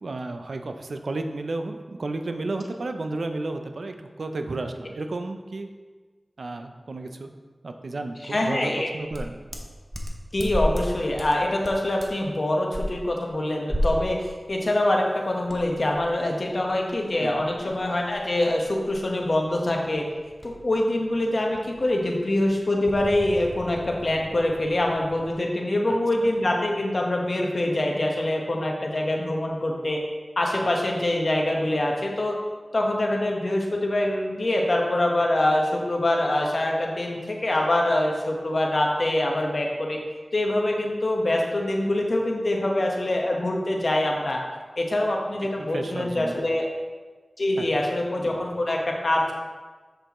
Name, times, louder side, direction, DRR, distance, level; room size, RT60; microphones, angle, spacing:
voice 1, 0.0-5.7 6.4-7.3 7.6-9.4 17.2-17.5 25.9-26.0 45.6-46.4 47.6-47.7, right 2 dB, 80° right, 6 dB, 0.6 m, -32 dB
voice 2, 8.2-8.9 10.3-20.1 20.4-30.0 30.4-32.3 32.7-40.0 40.3-44.4 44.8-46.7 47.4-49.3, left 1 dB, 65° left, 0 dB, 1.2 m, -24 dB
sound 1, 9.1-10.9 11.2-11.4 11.6-12.3 12.7-12.8 13.7-14.1 14.5-14.7 15.5-20.7 21.0-21.2 21.5-25.3, equal, 10° right, 1.0 m, -34 dB
7.7 x 6.6 x 3.1 m, 1.4 s
wide cardioid pair, 50°, 0 cm